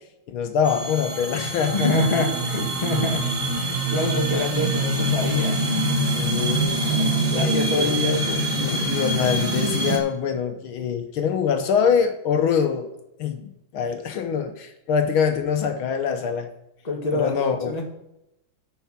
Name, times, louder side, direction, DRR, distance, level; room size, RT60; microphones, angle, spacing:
voice 1, 0.3-1.9 6.2-6.8 7.3-8.0 8.6-12.9 13.2-16.5 17.1-17.7, left 7 dB, 80° left, 6 dB, 1.8 m, -24 dB
sound 1, 0.6-10.0, right 1 dB, 20° right, 1.3 m, -25 dB
voice 2, 1.7-3.2 3.5-6.0 6.9-8.4 8.7-8.9 16.8-17.9, left 2 dB, 20° left, 0 dB, 1.6 m, -26 dB
10.5 x 4.7 x 5.8 m, 0.86 s
omnidirectional pair, 2.3 m